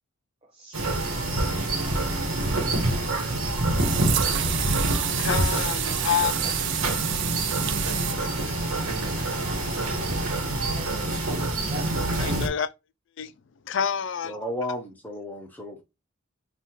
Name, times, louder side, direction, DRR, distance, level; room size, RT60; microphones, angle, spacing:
voice 1, 0.4-0.8 6.4-6.5 10.6-11.3 11.6-12.0, right 1 dB, 25° right, 0.7 m, -42 dB
sound 1, 0.7-12.5, right 2 dB, 80° right, 1.1 m, -26 dB
sound 2, 3.7-8.1, right 12 dB, 55° right, 0.3 m, -29 dB
voice 2, 5.2-6.3 7.8-8.8 9.5-9.7 12.2-12.7 13.2-13.3 13.7-14.3, left 7 dB, 60° left, 0.4 m, -29 dB
voice 3, 14.2-15.8, left 1 dB, 10° left, 0.6 m, -33 dB
5.4 x 2.4 x 2.9 m
head